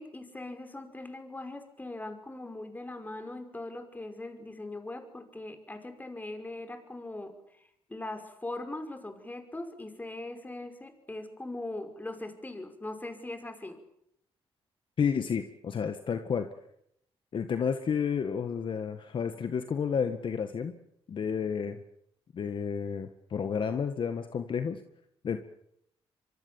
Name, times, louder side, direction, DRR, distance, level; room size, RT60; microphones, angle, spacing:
voice 1, 0.0-13.8, left 2 dB, 15° left, 7 dB, 5.3 m, -40 dB
voice 2, 15.0-16.5 17.3-20.7 21.1-21.8 22.3-24.8 25.2-25.4, left 6 dB, 55° left, 8 dB, 1.8 m, -31 dB
26.0 x 24.0 x 7.3 m, 0.74 s
cardioid pair, 90°, 10 cm